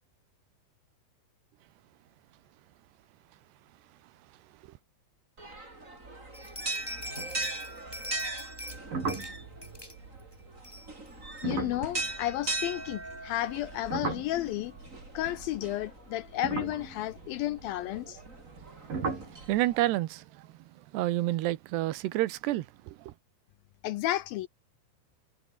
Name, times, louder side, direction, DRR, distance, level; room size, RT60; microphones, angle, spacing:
sound 1, 5.4-19.8, right 2 dB, 20° right, 4.9 m, -40 dB
sound 2, 6.3-8.8 9.1-9.3 9.6-10.0 10.3-10.4 10.6-11.1 11.4-11.5 12.0-12.1, left 1 dB, 5° left, 4.6 m, -43 dB
sound 3, 8.9-13.2 13.5-15.7 16.3-18.6 18.9-19.4, right 4 dB, 55° right, 7.9 m, -38 dB
voice 1, 11.4-14.7 15.1-18.2 23.8-24.5, left 15 dB, 75° left, 2.3 m, -32 dB
voice 2, 19.3-20.5 20.9-23.1, right 16 dB, 80° right, 3.1 m, -29 dB
omnidirectional pair, 4.8 m